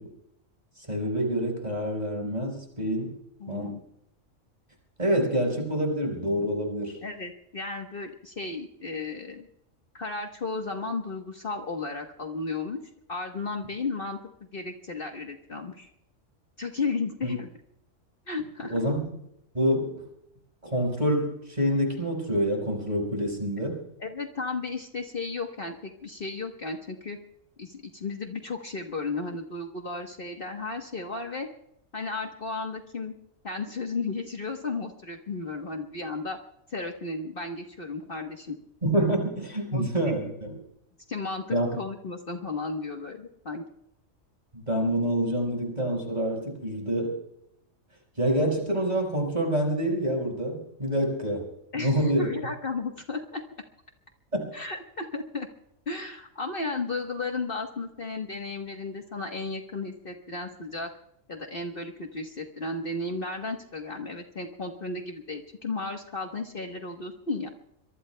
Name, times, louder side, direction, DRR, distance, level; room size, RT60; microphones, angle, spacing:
voice 1, 0.9-3.1 3.5-3.8 5.0-7.0 18.7-19.0 19.5-20.1 20.6-23.8 38.8-40.6 41.5-41.7 44.5-47.2 48.2-51.5 51.7-52.3 54.3-54.5, right 1 dB, 30° right, 1 dB, 5.1 m, -27 dB
voice 2, 3.4-3.8 7.0-9.5 9.9-12.8 13.1-14.2 14.5-15.9 16.6-17.5 18.3-18.7 24.0-27.2 27.6-31.5 31.9-33.1 33.4-36.4 36.7-38.6 39.7-39.9 41.1-43.6 51.7-53.4 54.5-55.5 55.9-60.9 61.3-67.5, left 3 dB, 45° left, 3 dB, 1.3 m, -34 dB
25.0 x 23.5 x 2.2 m, 0.77 s
omnidirectional pair, 1.4 m